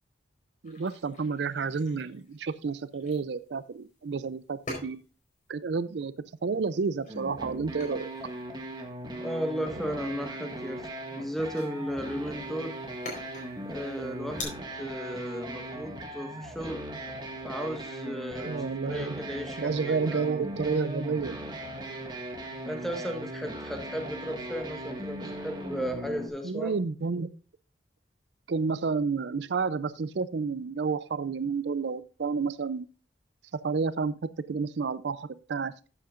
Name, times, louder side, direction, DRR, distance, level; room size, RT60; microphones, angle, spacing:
sound 1, 0.6-14.4, left 2 dB, 45° left, 4.3 m, -47 dB
voice 1, 0.6-5.0 5.5-8.1 18.4-19.2 19.6-21.4 26.4-27.3 28.5-32.9 33.6-35.9, right 5 dB, 70° right, 15 dB, 0.5 m, -30 dB
sound 2, 7.1-26.3, right 1 dB, 25° right, 1.7 m, -39 dB
voice 2, 9.2-12.7 13.6-16.8 17.4-18.5 18.8-20.3 22.7-26.8, equal, ahead, 4 dB, 1.4 m, -35 dB
13.0 x 8.5 x 2.5 m, 0.35 s
head